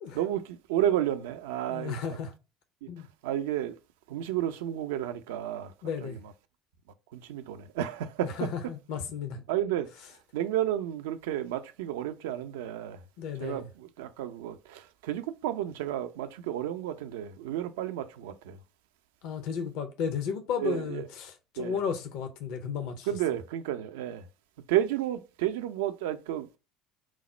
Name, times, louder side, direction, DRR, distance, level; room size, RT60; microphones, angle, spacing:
voice 1, 0.1-2.2 3.2-3.7 4.1-5.7 6.0-6.2 7.1-8.4 9.5-9.9 10.3-13.0 13.4-18.6 20.6-21.1 21.6-21.8 23.1-24.2 24.7-26.5, right 12 dB, 70° right, 0.4 m, -31 dB
voice 2, 1.6-2.3 2.9-3.1 5.8-6.2 8.2-9.4 13.2-13.6 19.2-23.1, left 6 dB, 65° left, 0.5 m, -34 dB
4.7 x 2.1 x 4.1 m
hypercardioid pair, 65°, 0 cm